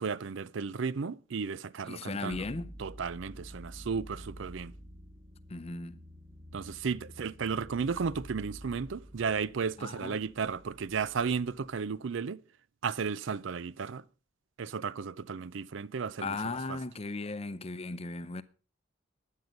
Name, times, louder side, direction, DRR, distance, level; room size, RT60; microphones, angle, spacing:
voice 1, 0.0-2.4 2.8-4.7 6.5-12.4 12.8-14.0 14.6-16.4, right 5 dB, 65° right, 0.5 m, -34 dB
voice 2, 1.9-2.7 5.5-6.0 9.8-10.2 16.2-18.4, left 3 dB, 30° left, 0.6 m, -37 dB
sound 1, 2.3-11.9, equal, 30° right, 2.9 m, -50 dB
12.0 x 9.6 x 5.2 m
head